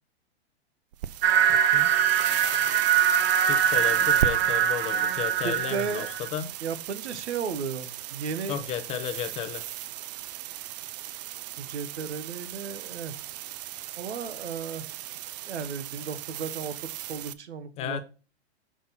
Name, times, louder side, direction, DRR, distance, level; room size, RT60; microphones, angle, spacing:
sound 1, 0.9-17.3, right 12 dB, 40° right, 0.4 m, -37 dB
sound 2, 1.2-6.3, right 8 dB, 60° right, 0.8 m, -23 dB
voice 1, 1.5-1.9 3.3-6.5 8.5-9.6 17.8-18.0, left 10 dB, 20° left, 0.5 m, -33 dB
voice 2, 5.4-6.1 6.6-8.6 11.6-13.1 14.0-14.9 15.5-16.8 17.1-18.0, right 6 dB, 85° right, 1.1 m, -34 dB
6.1 x 5.7 x 4.0 m
hypercardioid pair, 135°, 33 cm